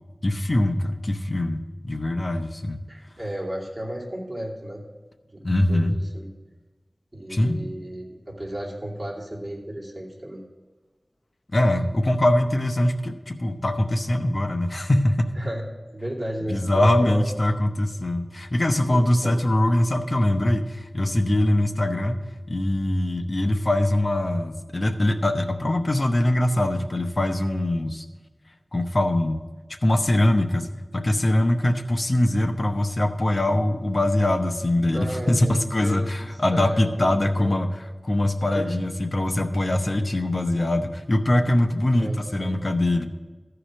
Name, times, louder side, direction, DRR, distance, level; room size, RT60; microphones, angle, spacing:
voice 1, 0.2-2.8 5.4-6.0 7.3-7.6 11.5-15.3 16.5-28.1 28.7-29.4 29.8-30.7 30.9-37.7 38.0-43.1, left 1 dB, 50° left, 6 dB, 0.8 m, -22 dB
voice 2, 2.9-4.8 5.3-6.3 7.1-10.4 15.4-15.6 15.9-17.3 18.9-19.4 34.9-37.6 38.5-38.8 42.0-42.7, equal, 25° right, -3 dB, 2.8 m, -33 dB
14.0 x 4.9 x 6.2 m, 1.3 s
wide cardioid pair, 65°, 0 cm